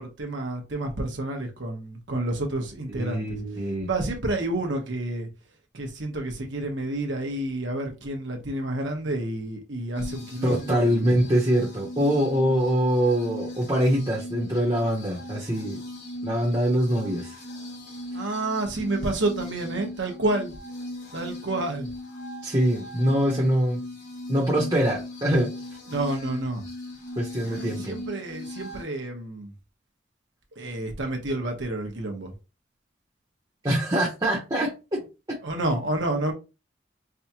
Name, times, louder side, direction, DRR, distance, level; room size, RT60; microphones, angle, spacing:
voice 1, 0.0-3.2 3.8-5.3 5.7-11.1 18.1-20.5 21.1-21.9 25.9-26.6 27.4-29.5 30.6-32.3 35.4-36.3, right 2 dB, 90° right, 1.1 m, -29 dB
voice 2, 2.9-3.9 10.4-15.8 16.2-17.3 22.4-23.8 24.3-25.5 27.2-28.0 33.6-35.4, equal, 25° right, 1.0 m, -24 dB
sound 1, 9.9-28.8, left 1 dB, 90° left, 2.1 m, -38 dB
4.8 x 2.3 x 2.9 m
head